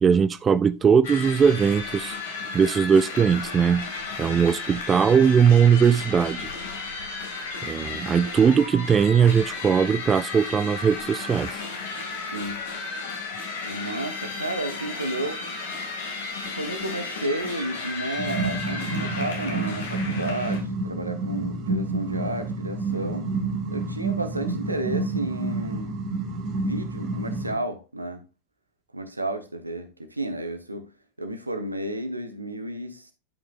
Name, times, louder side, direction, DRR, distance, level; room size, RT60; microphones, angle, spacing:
voice 1, 0.0-2.2 2.5-3.9 4.2-6.5 7.6-11.6, right 7 dB, 20° right, 0.3 m, -20 dB
sound 1, 1.0-20.6, left 4 dB, 60° left, 2.3 m, -34 dB
voice 2, 13.6-15.4 16.5-23.3 23.7-26.0 26.4-28.2 28.9-30.9 31.2-33.1, right 1 dB, 85° right, 1.1 m, -32 dB
sound 2, 18.2-27.5, right 3 dB, 40° right, 1.8 m, -29 dB
11.0 x 5.9 x 2.4 m
figure-of-eight pair, 90°, 0 cm